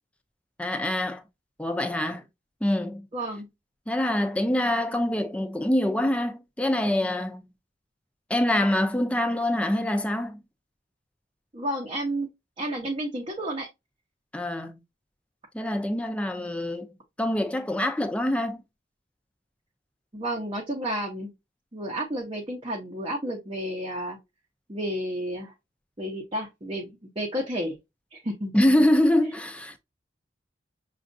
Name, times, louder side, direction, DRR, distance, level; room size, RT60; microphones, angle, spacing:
voice 1, 0.6-1.2 1.6-2.3 2.6-3.1 3.9-7.4 8.3-10.4 14.3-14.8 15.5-16.9 17.2-18.6 28.5-29.8, left 1 dB, 5° left, 0.5 m, -25 dB
voice 2, 3.1-3.5 11.5-12.3 12.6-13.7 20.1-21.3 21.7-24.2 24.7-25.5 26.0-27.7 28.1-28.5, right 1 dB, 30° right, 0.8 m, -31 dB
6.2 x 2.4 x 2.6 m
head